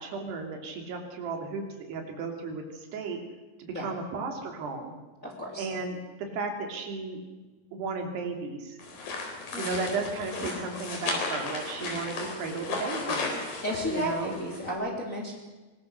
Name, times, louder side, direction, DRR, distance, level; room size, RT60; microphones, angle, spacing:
voice 1, 0.0-3.2 3.6-4.9 5.6-7.2 7.7-8.8 9.6-13.3 13.9-14.3, right 4 dB, 85° right, 3 dB, 4.9 m, -34 dB
voice 2, 5.2-5.7 9.5-9.6 13.6-15.3, equal, 20° left, -1 dB, 3.3 m, -32 dB
sound 1, 8.8-14.7, left 3 dB, 55° left, 5.5 m, -34 dB
23.5 x 20.5 x 6.7 m, 1.2 s
omnidirectional pair, 4.6 m